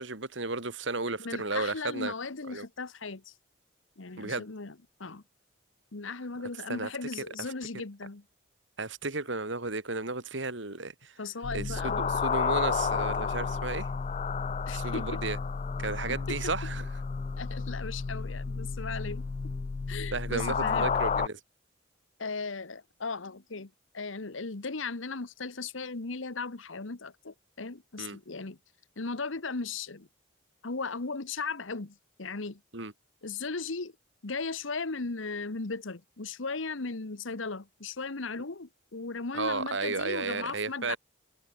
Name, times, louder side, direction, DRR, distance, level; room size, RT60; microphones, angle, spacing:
voice 1, 0.0-2.1 2.5-2.7 4.2-4.4 6.7-6.9 8.8-11.1 11.5-13.9 14.7-15.4 15.8-16.9 20.1-21.4 28.0-28.2 32.7-32.9 39.3-41.0, right 3 dB, 70° right, 2.8 m, -33 dB
voice 2, 1.2-3.3 4.0-4.7 5.0-5.2 5.9-8.2 11.2-12.2 14.7-15.2 16.1-16.5 17.4-19.3 19.9-20.9 22.2-28.6 29.0-30.1 30.6-32.6 33.2-33.9 34.2-41.0, left 4 dB, 80° left, 1.3 m, -37 dB
sound 1, 11.4-21.3, left 5 dB, 35° left, 0.3 m, -31 dB
head